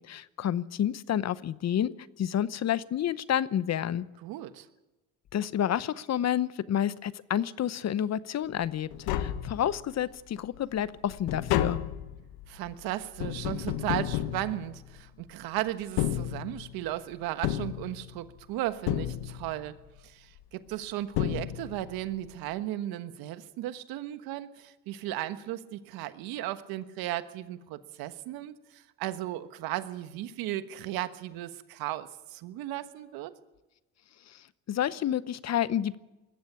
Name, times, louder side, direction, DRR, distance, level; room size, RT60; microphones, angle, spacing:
voice 1, 0.0-4.1 5.3-11.8 34.3-36.0, left 10 dB, 45° left, 17 dB, 0.9 m, -30 dB
voice 2, 4.2-4.7 12.5-19.7 20.0-33.3, right 14 dB, 80° right, 11 dB, 1.4 m, -35 dB
Tap, 8.6-8.7 8.9-10.0 10.4-15.2 15.8-16.9 17.4-18.4 18.9-19.7 20.7-20.8 21.1-22.0 22.2-22.3, left 12 dB, 85° left, 1.3 m, -32 dB
20.5 x 14.5 x 8.5 m, 1.1 s
supercardioid pair, 85°, 36 cm